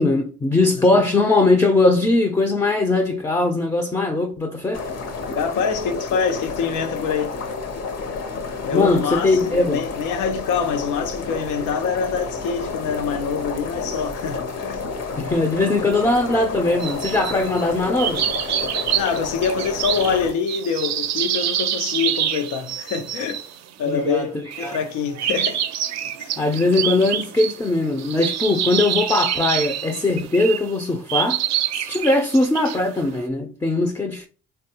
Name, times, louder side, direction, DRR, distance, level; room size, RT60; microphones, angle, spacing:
voice 1, 0.0-4.8 8.7-9.8 15.2-18.2 23.8-24.8 26.4-31.4 31.7-34.3, left 2 dB, 10° left, 0.4 m, -20 dB
sound 1, 4.7-20.3, left 4 dB, 55° left, 0.7 m, -30 dB
voice 2, 5.3-7.3 8.6-14.9 18.9-23.4 23.8-25.6 26.2-26.3, left 6 dB, 90° left, 0.6 m, -25 dB
sound 2, 16.8-17.6 18.0-23.6 24.0-24.1 24.5-24.9 25.1-30.7 31.1-33.0, right 10 dB, 65° right, 0.4 m, -26 dB
3.2 x 2.2 x 2.8 m
cardioid pair, 90°, 30 cm